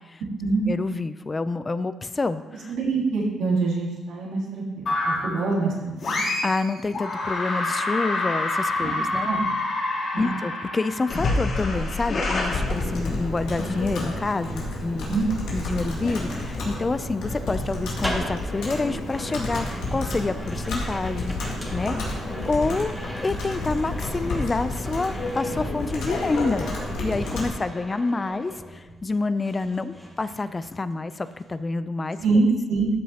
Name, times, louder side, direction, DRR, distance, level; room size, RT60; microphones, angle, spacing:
voice 1, 0.7-2.7 6.4-9.3 10.2-15.2 15.5-22.0 22.5-22.9 23.2-26.7 27.0-32.2, left 3 dB, 25° left, 13 dB, 0.4 m, -28 dB
voice 2, 2.7-6.2 8.8-9.0 9.2-9.5 10.1-10.3 15.1-15.3 32.2-32.9, right 3 dB, 85° right, -5 dB, 2.8 m, -25 dB
sound 1, 4.9-5.4 6.0-6.6 6.9-13.4, left 2 dB, 55° left, 3.0 m, -27 dB
Computer keyboard, 12.5-27.5, left 2 dB, 85° left, 2.2 m, -30 dB
sound 2, 15.1-29.1 29.4-30.9 31.2-31.5, equal, ahead, 2.0 m, -39 dB
13.0 x 7.2 x 2.9 m, 1.2 s
cardioid pair, 90°, 0 cm